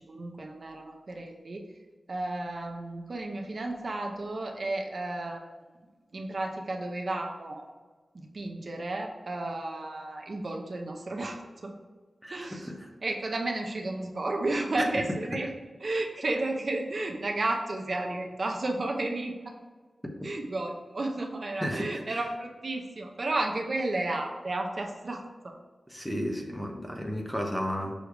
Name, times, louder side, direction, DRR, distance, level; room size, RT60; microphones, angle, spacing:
voice 1, 0.1-1.6 2.1-5.5 6.1-7.6 8.1-11.7 12.3-12.7 13.0-15.5 15.8-19.5 20.2-25.5, right 2 dB, 50° right, 2 dB, 0.7 m, -32 dB
voice 2, 12.2-12.9 14.9-15.0 21.5-22.2 25.9-27.9, equal, 5° left, 1 dB, 0.9 m, -33 dB
6.4 x 3.4 x 4.6 m, 1.3 s
wide cardioid pair, 115°, 0 cm